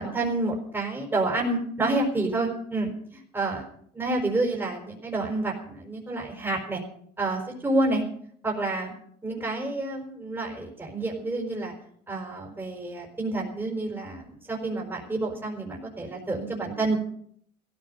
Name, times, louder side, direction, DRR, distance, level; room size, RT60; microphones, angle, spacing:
voice 1, 0.0-2.9 3.3-3.6 3.9-6.8 7.2-8.0 8.4-8.9 9.2-11.7 12.1-17.0, right 2 dB, 15° right, -1 dB, 5.0 m, -28 dB
17.5 x 15.0 x 5.5 m, 0.64 s
cardioid pair, 110°, 17 cm